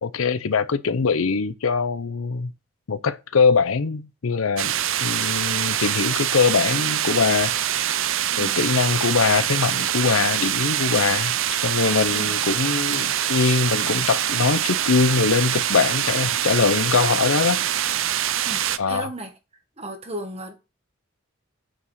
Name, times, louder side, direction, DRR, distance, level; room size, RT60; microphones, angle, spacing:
voice 1, 0.0-2.5 2.9-4.7 5.0-7.5 8.4-17.7 18.8-19.1, left 5 dB, 80° left, 0.6 m, -22 dB
sound 1, 4.6-18.8, right 11 dB, 70° right, 0.6 m, -24 dB
voice 2, 12.1-12.4 18.4-19.3 19.8-20.5, right 1 dB, 30° right, 1.7 m, -35 dB
8.8 x 4.9 x 6.4 m
head